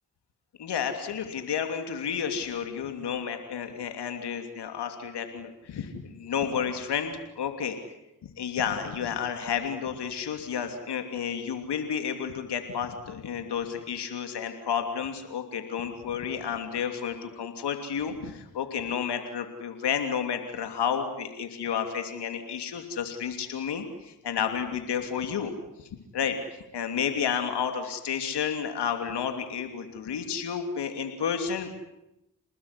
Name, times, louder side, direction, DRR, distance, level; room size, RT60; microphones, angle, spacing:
voice 1, 0.6-7.8 8.4-25.5 26.1-31.7, left 7 dB, 85° left, 6 dB, 3.1 m, -31 dB
29.0 x 20.0 x 9.9 m, 0.89 s
supercardioid pair, 40°, 40 cm